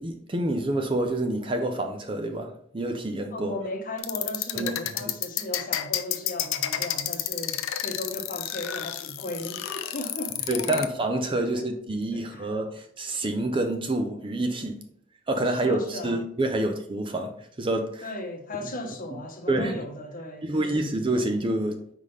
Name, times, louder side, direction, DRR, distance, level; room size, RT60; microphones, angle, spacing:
voice 1, 0.0-3.5 4.5-4.7 5.0-5.1 10.5-14.8 15.3-18.1 19.5-19.8 20.4-21.8, right 1 dB, 25° right, 0.5 m, -27 dB
voice 2, 3.3-10.8 11.5-11.6 12.1-12.5 15.4-16.2 18.0-20.9, left 1 dB, 40° left, 0.9 m, -36 dB
sound 1, 4.0-10.9, left 12 dB, 70° left, 0.5 m, -30 dB
4.8 x 3.8 x 5.3 m
head